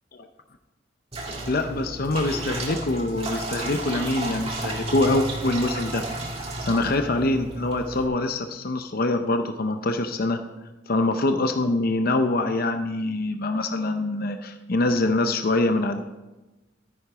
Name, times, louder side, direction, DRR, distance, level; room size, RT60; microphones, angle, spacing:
sound 1, 1.1-8.1, right 2 dB, 30° right, 1.9 m, -32 dB
voice 1, 1.5-6.0 6.3-10.4 10.9-16.0, left 2 dB, 50° left, 7 dB, 0.7 m, -24 dB
13.5 x 9.7 x 4.8 m, 1.1 s
head